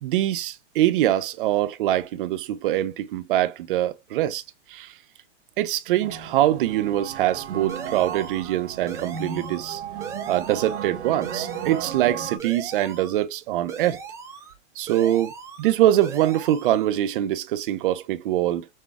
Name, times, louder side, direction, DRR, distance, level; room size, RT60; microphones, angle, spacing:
voice 1, 0.0-4.4 4.7-4.9 5.6-9.8 10.3-14.0 14.8-15.3 15.6-18.7, right 13 dB, 50° right, 0.7 m, -23 dB
sound 1, 6.0-12.4, right 8 dB, 75° right, 1.3 m, -35 dB
sound 2, 7.7-8.5 8.9-9.7 10.0-10.9 11.2-12.1 12.4-13.2 13.7-14.5 14.9-15.7 16.0-16.9, right 6 dB, 10° right, 0.5 m, -38 dB
6.3 x 2.3 x 3.5 m
supercardioid pair, 155°, 35 cm